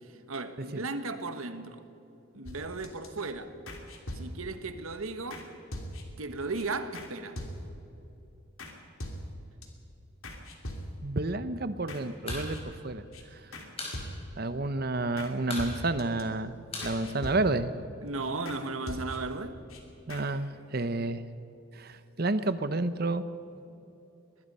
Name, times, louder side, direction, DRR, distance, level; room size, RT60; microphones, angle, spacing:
voice 1, 0.3-1.8 2.3-3.6 4.1-5.5 6.2-7.4 18.0-19.6, right 3 dB, 90° right, 1.4 m, -35 dB
sound 1, 2.4-3.1 3.7-4.6 5.3-5.4 5.7-6.2 6.5-6.6 6.9-7.1 7.4-7.9 8.6-8.7 9.0-9.7 10.2-11.2 11.9-12.0 12.3-12.8 13.1-13.2 13.5-13.7 13.9-14.5 15.2-15.3 15.6-16.2 16.8-17.8 18.5-18.6 18.9-19.4 19.7-19.8 20.1-20.2, equal, 85° left, 3.1 m, -41 dB
voice 2, 11.0-12.6 12.8-13.0 14.4-16.5 16.8-17.7 20.1-21.2 21.8-23.2, right 2 dB, 45° right, 0.9 m, -30 dB
sound 2, 12.2-12.5 12.7-12.8 13.1-14.0 14.3-14.4 14.7-15.1 15.4-17.8, left 3 dB, 30° left, 4.8 m, -39 dB
23.5 x 20.0 x 5.6 m
head